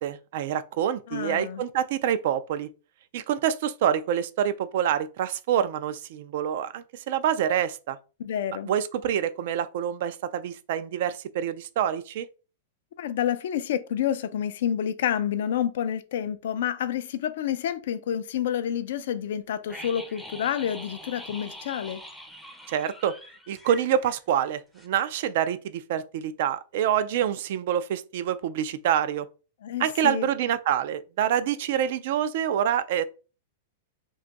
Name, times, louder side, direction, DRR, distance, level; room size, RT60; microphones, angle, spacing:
voice 1, 0.0-2.7 3.1-8.0 8.7-12.3 22.7-23.1 23.5-29.3 29.8-33.0, right 9 dB, 60° right, 0.3 m, -26 dB
voice 2, 1.1-1.6 8.2-8.7 13.0-22.0 29.6-30.3, left 9 dB, 70° left, 0.3 m, -29 dB
sound 1, 19.7-24.5 24.8-24.9, equal, ahead, 0.5 m, -44 dB
2.5 x 2.3 x 3.9 m
hypercardioid pair, 130°, 0 cm